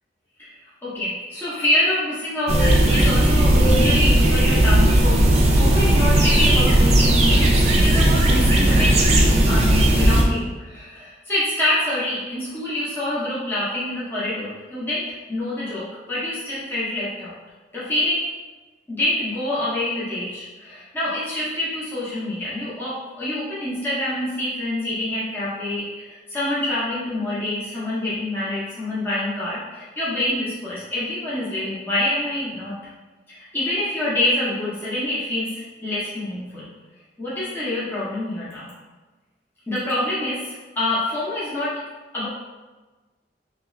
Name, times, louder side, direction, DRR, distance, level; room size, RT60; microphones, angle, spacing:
voice 1, 0.8-17.3 17.7-18.3 18.9-32.8 33.3-36.7 37.2-38.7 39.7-41.8 42.1-42.3, left 1 dB, 10° left, -10 dB, 0.7 m, -26 dB
sound 1, 2.5-10.2, right 1 dB, 35° right, 0.4 m, -16 dB
3.3 x 2.4 x 3.1 m, 1.3 s
head